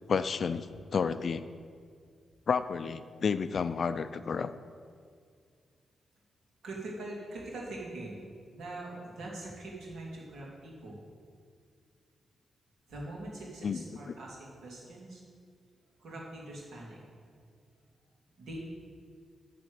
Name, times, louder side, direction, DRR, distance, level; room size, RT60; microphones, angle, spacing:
voice 1, 0.1-0.7 0.9-1.4 2.5-4.5 13.6-13.8 14.1-14.2, left 6 dB, 45° left, 12 dB, 0.3 m, -30 dB
voice 2, 6.6-8.3 8.5-11.0 12.9-15.2 16.0-17.0 18.4-18.6, right 2 dB, 75° right, -3 dB, 2.5 m, -42 dB
11.5 x 4.1 x 7.8 m, 2.1 s
wide cardioid pair, 155°, 0 cm